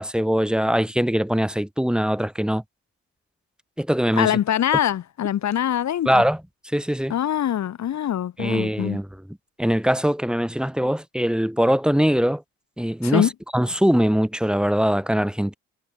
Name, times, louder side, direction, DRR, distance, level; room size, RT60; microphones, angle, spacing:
voice 1, 0.0-2.6 3.8-4.3 6.0-6.4 6.7-7.1 8.4-9.1 9.6-12.4 12.8-15.6, equal, 5° right, 4.7 m, -22 dB
voice 2, 4.2-6.2 7.1-9.0 13.0-13.3, left 10 dB, 65° left, 3.0 m, -23 dB
cardioid pair, 90°, 30 cm